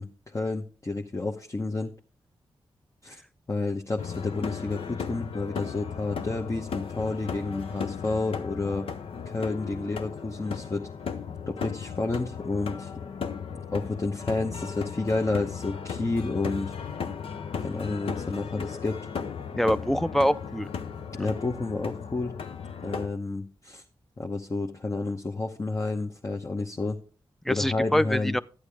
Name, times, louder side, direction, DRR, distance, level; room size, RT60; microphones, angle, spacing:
voice 1, 0.0-1.9 3.0-3.2 3.5-8.9 9.2-10.9 11.5-12.9 13.5-16.7 17.6-19.1 21.1-22.3 22.8-23.8 24.2-27.0 27.5-28.3, left 3 dB, 30° left, 1.0 m, -30 dB
sound 1, 4.0-23.1, left 6 dB, 75° left, 0.7 m, -36 dB
voice 2, 19.5-20.7 27.5-28.4, equal, 5° left, 0.5 m, -24 dB
11.5 x 8.2 x 3.4 m
cardioid pair, 50°, 10 cm